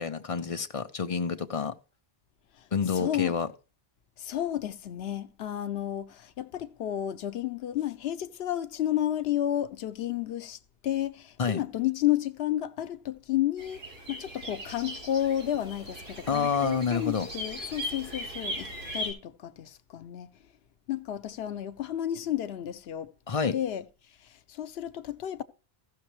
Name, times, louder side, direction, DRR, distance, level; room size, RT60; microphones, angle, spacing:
voice 1, 0.0-1.7 2.7-3.5 11.4-11.6 16.3-17.3 23.3-23.6, left 6 dB, 40° left, 0.6 m, -28 dB
voice 2, 2.9-3.4 4.2-10.6 10.8-13.8 14.1-20.3 20.9-23.1 23.5-23.8 24.5-25.4, left 12 dB, 85° left, 0.9 m, -31 dB
sound 1, 13.6-19.1, equal, 85° right, 3.1 m, -38 dB
15.0 x 6.6 x 3.1 m
omnidirectional pair, 1.0 m